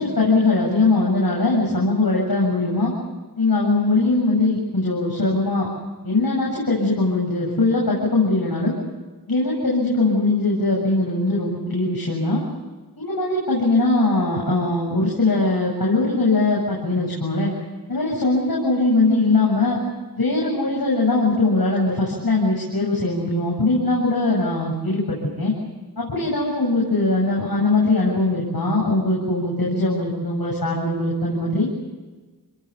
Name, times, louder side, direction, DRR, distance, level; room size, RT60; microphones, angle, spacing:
voice 1, 0.0-2.9 3.4-5.7 6.0-8.8 9.3-12.4 13.0-17.5 17.9-19.8 20.2-25.5 26.0-31.7, left 2 dB, 65° left, -3 dB, 7.9 m, -21 dB
30.0 x 21.0 x 7.0 m, 1.3 s
wide cardioid pair, 55°, 39 cm